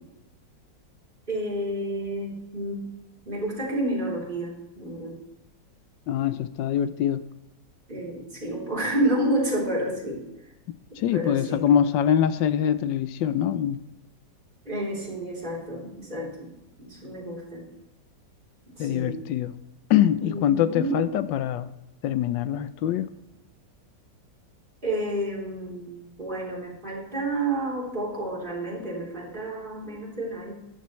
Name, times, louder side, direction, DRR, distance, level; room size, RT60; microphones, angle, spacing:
voice 1, 1.3-2.8 3.3-5.2 7.9-10.2 11.1-11.6 14.7-16.5 16.8-17.6 18.8-19.2 20.2-21.0 24.8-30.5, right 1 dB, 25° right, -5 dB, 3.6 m, -30 dB
voice 2, 6.1-7.2 11.0-13.8 18.8-19.5 19.9-21.7 22.0-23.1, left 10 dB, 85° left, 14 dB, 1.3 m, -24 dB
14.0 x 12.0 x 3.1 m, 0.94 s
omnidirectional pair, 2.0 m